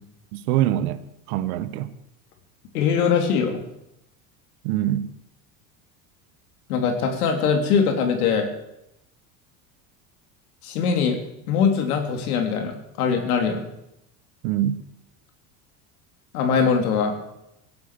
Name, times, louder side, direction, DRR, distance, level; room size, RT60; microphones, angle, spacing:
voice 1, 0.3-1.0 1.3-1.9 4.6-5.1 14.4-14.8, right 12 dB, 80° right, 1.3 m, -24 dB
voice 2, 2.7-3.6 6.7-8.5 10.6-11.2 11.5-13.6 16.3-17.1, left 6 dB, 90° left, 3.3 m, -22 dB
17.5 x 8.0 x 8.4 m
supercardioid pair, 105°, 43 cm